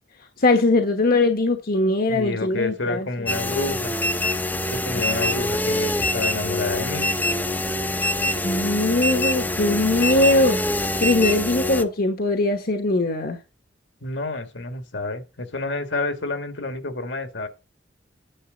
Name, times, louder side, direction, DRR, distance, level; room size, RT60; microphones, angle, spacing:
voice 1, 0.4-3.1 5.0-5.1 8.4-13.4, left 2 dB, 55° left, 1.2 m, -21 dB
voice 2, 2.1-3.9 4.7-7.1 14.0-17.5, left 2 dB, 75° left, 1.9 m, -29 dB
sound 1, 3.3-11.8, left 1 dB, 10° left, 0.7 m, -25 dB
10.0 x 6.8 x 4.0 m
head